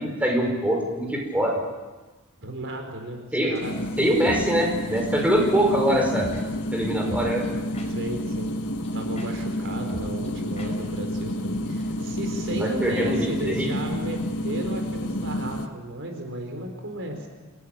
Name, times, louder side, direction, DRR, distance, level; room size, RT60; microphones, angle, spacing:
voice 1, 0.0-1.6 3.3-3.6 4.0-6.3 6.7-7.4 12.5-13.7, equal, 5° right, 0 dB, 5.4 m, -23 dB
voice 2, 2.4-3.2 3.5-3.7 7.9-8.5 8.9-17.3, right 1 dB, 60° right, 4 dB, 4.6 m, -34 dB
sound 1, 3.5-3.6 4.2-4.5 4.9-5.0 6.2-6.4 7.1-8.1 8.5-8.6 8.8-8.9 9.2-9.3 9.5-9.6 9.9-10.3 10.6-10.7 11.0-11.1 11.3-11.4, equal, 30° left, 5.4 m, -39 dB
sound 2, 3.6-15.7, left 1 dB, 80° left, 1.6 m, -29 dB
27.5 x 18.0 x 9.0 m, 1.2 s
head